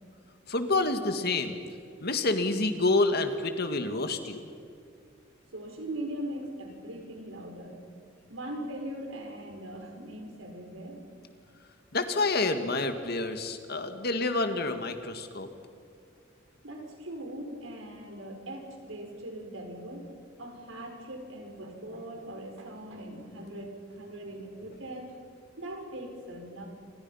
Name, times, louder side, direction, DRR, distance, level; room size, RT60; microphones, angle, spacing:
voice 1, 0.5-1.6 2.0-4.5 11.9-15.5, left 2 dB, 55° left, 7 dB, 2.0 m, -28 dB
voice 2, 5.5-7.8 8.3-11.0 16.6-20.1 20.4-25.1 25.6-26.7, right 1 dB, 90° right, 3 dB, 5.2 m, -40 dB
28.5 x 26.0 x 5.7 m, 2.3 s
head